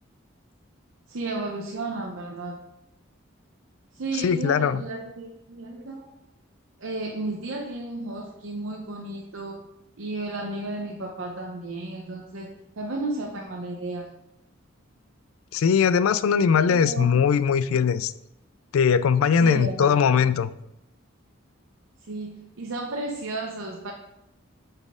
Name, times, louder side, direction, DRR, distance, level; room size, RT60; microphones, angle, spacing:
voice 1, 1.1-2.6 3.9-6.1 6.8-9.6 10.0-14.1 16.6-17.1 19.4-20.0 22.1-23.9, right 2 dB, 65° right, 0 dB, 0.7 m, -33 dB
voice 2, 4.2-4.8 15.5-18.1 18.7-20.5, left 7 dB, 85° left, 15 dB, 0.4 m, -20 dB
8.6 x 4.1 x 3.6 m, 0.86 s
head